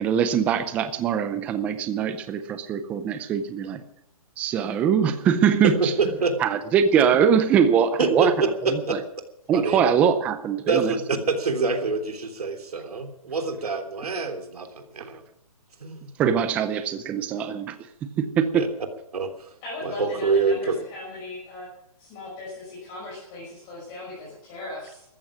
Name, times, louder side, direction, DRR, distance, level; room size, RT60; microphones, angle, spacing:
voice 1, 0.0-3.8 4.4-5.9 6.4-8.3 8.7-9.0 9.5-10.9 16.2-17.8 18.0-18.7, right 7 dB, 5° right, 11 dB, 0.5 m, -22 dB
voice 2, 5.6-6.4 8.0-8.3 8.6-9.0 9.5-9.8 10.7-15.2 15.8-16.1 18.5-18.7 19.1-19.5 19.8-20.8, right 4 dB, 90° right, 7 dB, 3.3 m, -26 dB
voice 3, 19.6-21.7 22.0-25.0, left 2 dB, 20° left, -5 dB, 5.9 m, -38 dB
14.0 x 14.0 x 6.2 m, 0.79 s
hypercardioid pair, 165°, 19 cm